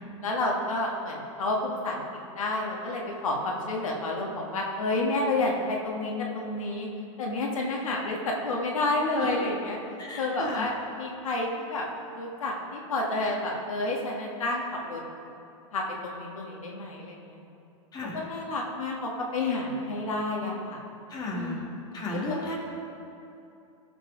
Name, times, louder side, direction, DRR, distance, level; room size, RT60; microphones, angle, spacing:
voice 1, 0.2-2.0 2.4-6.9 7.2-9.8 10.2-11.9 12.1-15.0 15.7-17.4 18.1-20.8 21.3-21.6 22.3-22.4, left 2 dB, 85° left, -1 dB, 1.7 m, -30 dB
voice 2, 9.2-9.5 10.0-10.7 17.9-18.2 21.1-21.6 21.9-22.6, left 2 dB, 25° left, -3 dB, 2.3 m, -34 dB
15.0 x 5.2 x 5.0 m, 2.7 s
hypercardioid pair, 120°, 17 cm